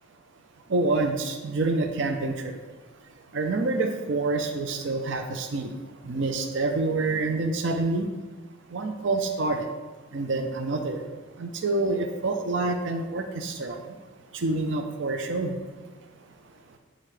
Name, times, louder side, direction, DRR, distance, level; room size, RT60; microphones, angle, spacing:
voice 1, 0.7-2.5 3.3-5.7 6.0-8.1 8.7-9.7 10.1-11.0 11.4-14.0 14.3-15.6, right 3 dB, 70° right, 5 dB, 0.5 m, -27 dB
9.2 x 3.7 x 3.3 m, 1.3 s
head